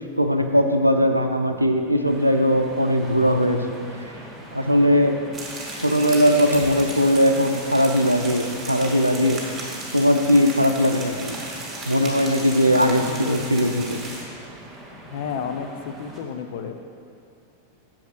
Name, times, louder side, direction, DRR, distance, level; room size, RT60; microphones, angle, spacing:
voice 1, 0.2-3.6 4.5-5.2 5.8-9.4 9.9-11.4 11.8-14.0, equal, 85° right, 5 dB, 0.5 m, -19 dB
sound 1, 2.1-16.2, right 1 dB, ahead, 1.6 m, -43 dB
sound 2, 5.3-14.2, right 2 dB, 15° right, 2.1 m, -35 dB
sound 3, 6.3-6.8, left 1 dB, 90° left, 1.1 m, -37 dB
voice 2, 12.5-13.5 15.1-16.7, left 6 dB, 55° left, 6 dB, 0.6 m, -32 dB
7.3 x 5.1 x 6.1 m, 2.5 s
figure-of-eight pair, 90°, 0 cm